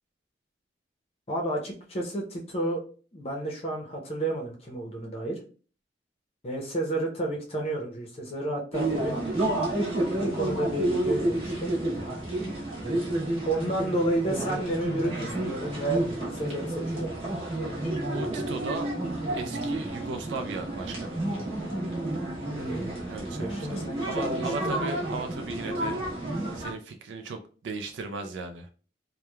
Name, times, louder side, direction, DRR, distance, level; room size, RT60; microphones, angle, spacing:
voice 1, 1.3-2.8 3.1-5.4 6.4-9.2 10.2-11.7 13.5-17.2 22.5-23.0 23.4-24.7, right 1 dB, 35° left, 0 dB, 0.6 m, -31 dB
sound 1, 8.7-26.7, right 1 dB, 30° right, 0.9 m, -30 dB
voice 2, 18.1-18.9 19.3-21.3 23.1-26.1 26.5-28.7, right 3 dB, 90° right, 7 dB, 0.3 m, -36 dB
3.0 x 2.1 x 2.2 m, 0.39 s
head